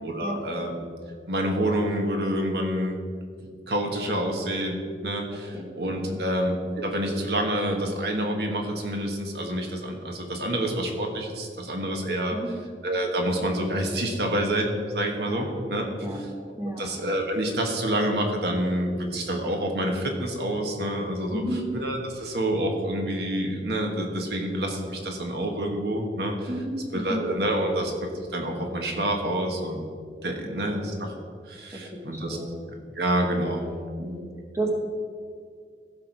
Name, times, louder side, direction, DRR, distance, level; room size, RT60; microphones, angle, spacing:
voice 1, 0.0-0.8 1.3-3.0 3.7-12.4 12.8-15.8 16.8-21.4 21.7-26.5 26.9-29.9 30.2-31.1 31.4-32.4 32.9-33.6, right 1 dB, 70° right, 2 dB, 1.4 m, -27 dB
voice 2, 21.3-21.7 26.5-27.8 30.7-30.9 31.7-32.6 34.0-34.7, right 1 dB, 15° right, 0 dB, 1.2 m, -33 dB
15.5 x 6.0 x 4.6 m, 2.1 s
head